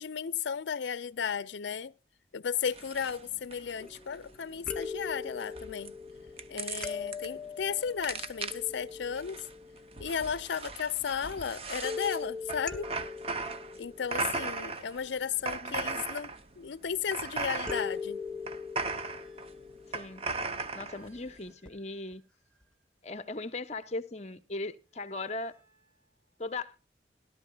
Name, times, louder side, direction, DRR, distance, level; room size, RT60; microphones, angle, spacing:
voice 1, 0.0-1.9 2.3-5.9 6.5-9.4 10.0-12.9 13.8-18.2, left 7 dB, 75° left, 0.5 m, -34 dB
sound 1, 2.7-21.5, right 4 dB, 30° right, 0.6 m, -38 dB
sound 2, 3.8-4.3 4.7-10.3 11.8-15.1 17.7-20.9 21.7-21.8 22.1-22.2, left 5 dB, 5° left, 0.8 m, -41 dB
sound 3, 14.2-17.0 17.5-20.2 20.6-23.6 24.6-26.8, right 4 dB, 55° right, 6.3 m, -70 dB
voice 2, 15.6-16.0 19.9-20.2 20.7-22.2 23.0-25.6 26.4-26.8, left 2 dB, 35° left, 0.9 m, -38 dB
17.0 x 12.0 x 2.3 m
head